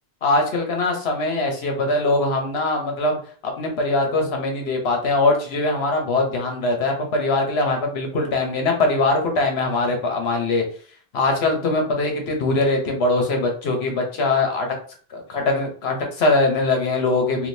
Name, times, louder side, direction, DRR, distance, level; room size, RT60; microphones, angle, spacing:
voice 1, 0.2-3.2 3.6-10.6 11.1-14.7 15.1-17.5, left 2 dB, 70° left, 2 dB, 1.1 m, -22 dB
3.6 x 2.6 x 2.6 m, 0.43 s
omnidirectional pair, 1.1 m